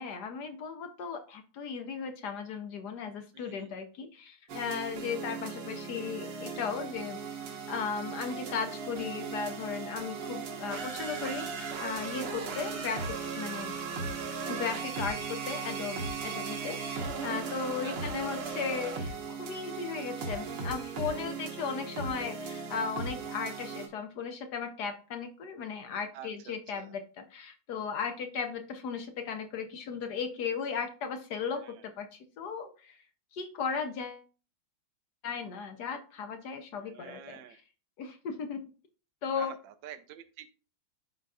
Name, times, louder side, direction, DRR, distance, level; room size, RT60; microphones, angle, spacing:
voice 1, 0.0-7.2 7.7-13.7 14.5-33.0 33.3-34.2 35.2-37.4 38.0-38.6 39.2-39.5, left 6 dB, 65° left, 6 dB, 1.1 m, -36 dB
voice 2, 3.3-3.7 11.1-11.5 16.6-17.0 17.5-18.0 26.1-26.9 31.5-31.9 36.8-37.6 39.4-40.5, right 10 dB, 70° right, 8 dB, 1.4 m, -49 dB
sound 1, 4.5-23.9, right 5 dB, 90° right, 2.1 m, -37 dB
11.5 x 3.9 x 2.3 m, 0.35 s
omnidirectional pair, 2.3 m